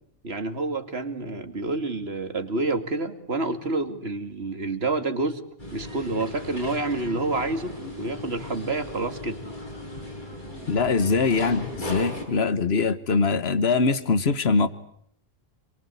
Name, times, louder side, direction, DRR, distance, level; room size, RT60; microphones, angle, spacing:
voice 1, 0.2-5.4 5.7-9.4, right 2 dB, 85° right, 8 dB, 2.6 m, -28 dB
sound 1, 5.6-12.2, left 1 dB, 50° left, 7.6 m, -37 dB
voice 2, 10.7-14.7, left 4 dB, 80° left, 13 dB, 1.5 m, -22 dB
28.0 x 22.5 x 8.4 m, 0.67 s
omnidirectional pair, 1.0 m